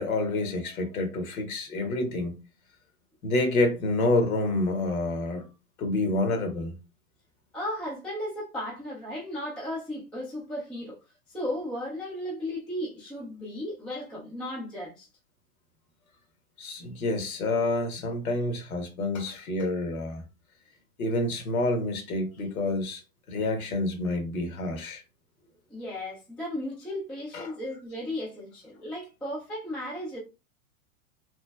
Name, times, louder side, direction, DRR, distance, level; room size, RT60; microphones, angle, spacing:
voice 1, 0.0-2.3 3.2-5.5 5.8-6.8 16.6-20.2 21.0-23.0 23.3-25.0 27.3-27.5, left 2 dB, 75° left, 1.2 m, -28 dB
voice 2, 7.5-11.0 11.3-15.1 25.7-30.2, left 1 dB, ahead, 0.3 m, -35 dB
3.1 x 2.5 x 2.2 m
hypercardioid pair, 120°, 43 cm